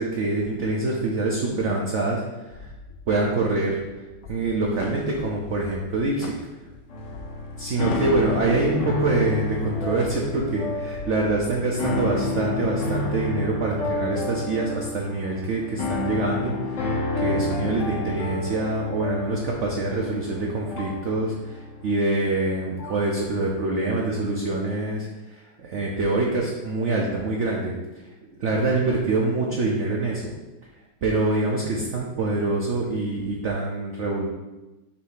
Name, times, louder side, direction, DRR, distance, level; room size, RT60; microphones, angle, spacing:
voice 1, 0.0-2.7 3.1-6.3 7.6-28.1 28.4-30.3 31.0-34.2, right 2 dB, 60° right, -2 dB, 0.7 m, -25 dB
sound 1, 2.5-11.5, left 3 dB, 90° left, 0.7 m, -45 dB
sound 2, 4.5-10.8, left 4 dB, 70° left, 1.2 m, -43 dB
sound 3, 6.9-23.1, left 2 dB, 50° left, 1.1 m, -30 dB
6.4 x 2.7 x 5.6 m, 1.1 s
omnidirectional pair, 2.0 m